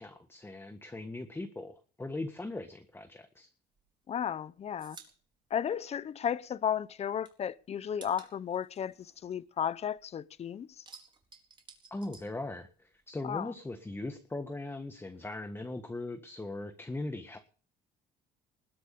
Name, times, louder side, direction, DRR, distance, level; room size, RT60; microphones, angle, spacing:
voice 1, 0.0-3.5 11.9-17.6, left 2 dB, 15° left, 1.5 m, -40 dB
sound 1, 3.7-6.5 6.8-10.1 10.4-13.0 13.3-14.4, right 4 dB, 30° right, 4.1 m, -56 dB
voice 2, 4.1-5.0 5.5-10.7 13.2-13.5, left 8 dB, 40° left, 0.7 m, -34 dB
20.5 x 8.1 x 6.9 m
cardioid pair, 110°, 17 cm